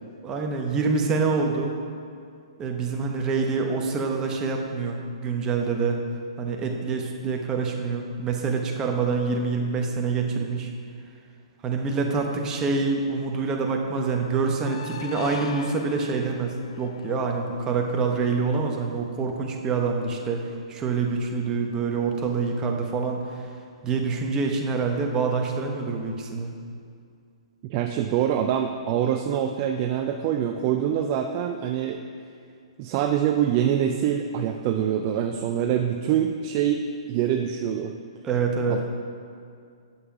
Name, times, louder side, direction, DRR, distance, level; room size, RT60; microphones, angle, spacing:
voice 1, 0.2-1.7 2.6-6.0 6.4-10.7 11.6-20.4 20.7-23.2 23.8-26.5 38.2-38.8, right 4 dB, 20° right, 1 dB, 1.0 m, -26 dB
sound 1, 14.3-17.5, left 6 dB, 65° left, 0.4 m, -40 dB
voice 2, 27.7-32.0 32.8-36.8 37.1-37.9 38.7-38.8, right 9 dB, 35° right, 5 dB, 0.4 m, -25 dB
7.2 x 6.7 x 5.2 m, 2.3 s
hypercardioid pair, 135°, 3 cm